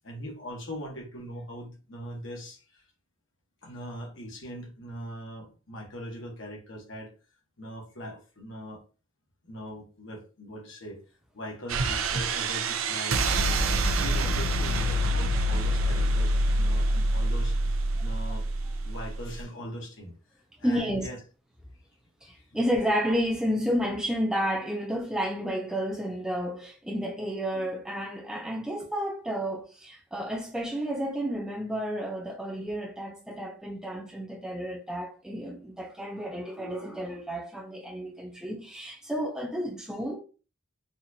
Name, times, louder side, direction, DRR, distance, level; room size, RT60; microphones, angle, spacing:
voice 1, 0.0-2.8 3.6-7.1 7.6-8.8 9.4-11.0 11.3-13.6 14.0-17.6 18.0-18.4 18.8-21.2 22.2-22.4, equal, 65° left, 1.2 m, -41 dB
sound 1, 11.7-19.4, right 1 dB, 85° right, 0.5 m, -26 dB
voice 2, 20.6-21.1 22.2-40.2, equal, 5° right, 0.5 m, -31 dB
4.0 x 2.5 x 2.8 m
head